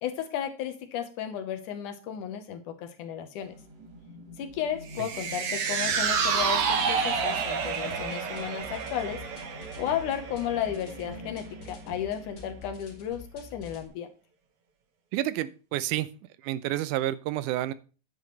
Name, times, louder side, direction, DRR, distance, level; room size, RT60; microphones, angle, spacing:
voice 1, 0.0-3.5 4.4-9.2 9.8-14.1, left 9 dB, 85° left, 7 dB, 2.6 m, -34 dB
sound 1, 3.4-12.6, equal, 40° right, 1.8 m, -47 dB
sound 2, 4.9-11.4 11.7-11.8, right 6 dB, 60° right, 1.8 m, -29 dB
sound 3, 5.9-13.9, left 3 dB, 45° left, 2.8 m, -47 dB
voice 2, 15.1-16.1 16.4-17.7, right 14 dB, 85° right, 15 dB, 2.1 m, -29 dB
9.4 x 8.8 x 3.2 m, 0.36 s
omnidirectional pair, 3.5 m